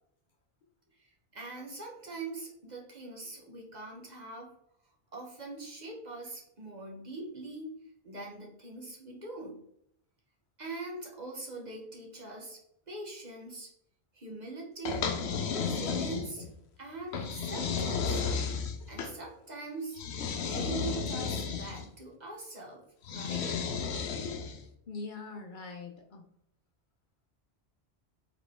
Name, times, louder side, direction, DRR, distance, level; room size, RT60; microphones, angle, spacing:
voice 1, 1.0-4.5 5.1-7.8 8.0-9.6 10.6-12.6 12.9-13.7 14.1-15.1 15.5-16.5 16.8-18.2 18.9-20.0 20.4-22.8 23.1-23.5, right 3 dB, 45° right, 0 dB, 1.1 m, -42 dB
sound 1, 14.9-16.5 17.1-19.1 20.0-21.9 23.0-24.6, left 5 dB, 85° left, 0.9 m, -33 dB
voice 2, 24.9-26.3, left 4 dB, 55° left, 2 dB, 0.7 m, -42 dB
3.8 x 3.8 x 3.6 m, 0.73 s
omnidirectional pair, 1.1 m